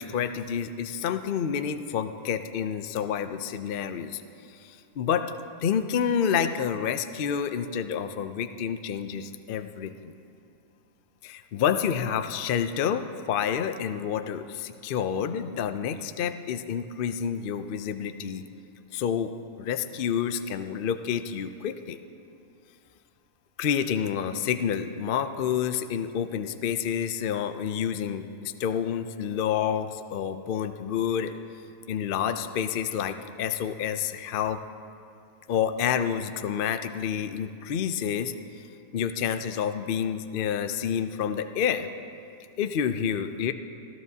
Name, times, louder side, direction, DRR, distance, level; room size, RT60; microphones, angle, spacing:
voice 1, 0.0-4.2 4.5-5.3 5.6-10.1 11.2-18.4 18.9-19.3 19.6-22.0 23.6-31.3 31.9-34.6 35.5-38.3 38.9-41.9 42.6-43.5, left 8 dB, 65° left, 9 dB, 0.5 m, -29 dB
23.5 x 14.0 x 2.8 m, 2.5 s
omnidirectional pair, 1.5 m